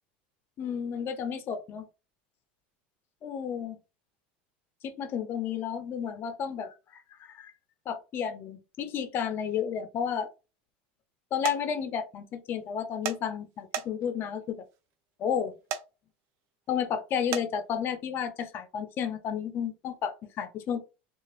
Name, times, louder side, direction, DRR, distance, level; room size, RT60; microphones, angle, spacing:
voice 1, 0.6-1.8 3.2-3.8 4.8-7.0 7.3-7.5 7.9-10.3 11.3-14.6 15.2-15.6 16.7-20.8, left 8 dB, 45° left, 0.6 m, -32 dB
sound 1, 11.4-11.6 13.1-13.2 13.7-14.2 15.7-15.8 17.3-17.5, right 9 dB, 55° right, 0.5 m, -32 dB
2.9 x 2.4 x 2.8 m
supercardioid pair, 105°, 5 cm